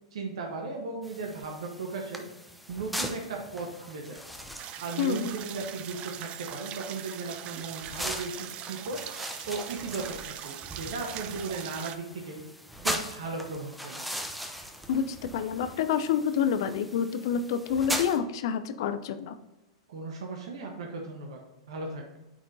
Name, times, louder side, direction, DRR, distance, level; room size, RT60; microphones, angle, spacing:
voice 1, 0.0-2.3 2.7-4.2 4.8-9.0 9.5-12.4 12.8-14.1 19.9-21.4 21.7-22.2, right 3 dB, 70° right, 0 dB, 1.1 m, -36 dB
sound 1, 1.0-18.2, equal, ahead, 0.8 m, -40 dB
sound 2, 4.6-12.0, right 11 dB, 35° right, 0.5 m, -41 dB
voice 2, 5.0-5.3 14.9-19.4, left 8 dB, 60° left, 10 dB, 0.5 m, -28 dB
8.9 x 4.4 x 2.7 m, 0.99 s
hypercardioid pair, 105°, 3 cm